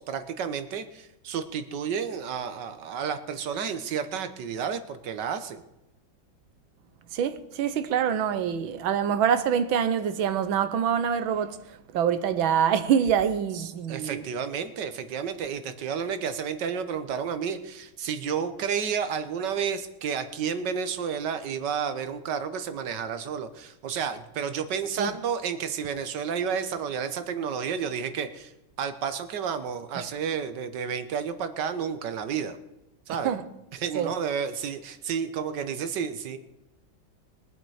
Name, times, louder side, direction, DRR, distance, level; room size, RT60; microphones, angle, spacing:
voice 1, 0.0-5.6 13.5-28.5 28.8-32.6 33.1-33.3 33.7-36.4, right 7 dB, 65° right, 1.5 m, -31 dB
voice 2, 7.1-14.2 25.0-25.1 30.0-30.1 33.1-33.4 33.9-34.1, right 8 dB, 80° right, 1.7 m, -25 dB
22.0 x 7.7 x 4.9 m
omnidirectional pair, 2.2 m